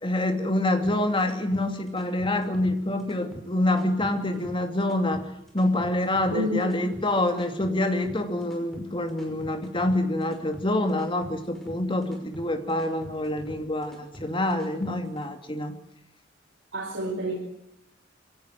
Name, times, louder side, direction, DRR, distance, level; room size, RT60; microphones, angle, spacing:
voice 1, 0.0-5.3 5.5-15.7, left 1 dB, 25° left, 7 dB, 2.6 m, -26 dB
sound 1, 0.8-15.3, equal, ahead, 5.5 m, -45 dB
voice 2, 6.3-6.7 16.7-17.4, equal, 90° right, -1 dB, 4.7 m, -28 dB
23.5 x 17.0 x 9.3 m, 0.81 s
head